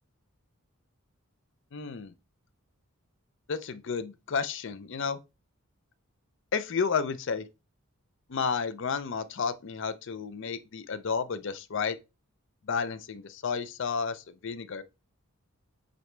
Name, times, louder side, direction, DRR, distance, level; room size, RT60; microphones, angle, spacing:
voice 1, 1.7-2.1 3.5-5.2 6.5-7.5 8.3-12.0 12.7-14.8, left 5 dB, 55° left, 0.5 m, -31 dB
7.8 x 4.1 x 3.3 m
head